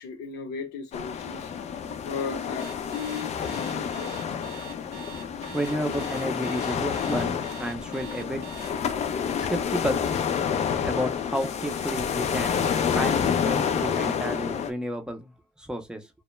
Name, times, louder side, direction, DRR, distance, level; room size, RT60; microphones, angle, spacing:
voice 1, 0.0-1.6 2.0-4.4, left 5 dB, 80° left, 0.8 m, -36 dB
sound 1, 0.9-14.7, left 7 dB, 40° left, 0.4 m, -29 dB
Alarm, 2.6-8.7, right 8 dB, 85° right, 0.6 m, -44 dB
voice 2, 5.5-8.4 9.4-10.0 10.8-12.6 12.9-16.1, equal, 5° right, 0.6 m, -31 dB
2.1 x 2.1 x 3.0 m
cardioid pair, 110°, 17 cm